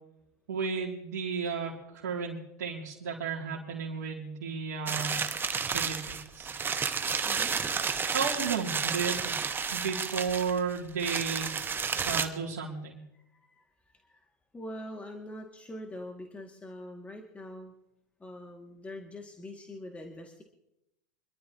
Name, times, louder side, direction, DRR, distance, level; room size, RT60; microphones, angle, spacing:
voice 1, 0.5-6.7 8.0-13.0, right 5 dB, 80° right, -5 dB, 2.7 m, -34 dB
sound 1, 4.9-12.2, right 6 dB, 20° right, 1.2 m, -31 dB
voice 2, 13.1-17.7 18.2-20.4, left 1 dB, 15° left, 1 dB, 2.2 m, -44 dB
26.5 x 12.5 x 3.0 m, 0.84 s
hypercardioid pair, 100°, 9 cm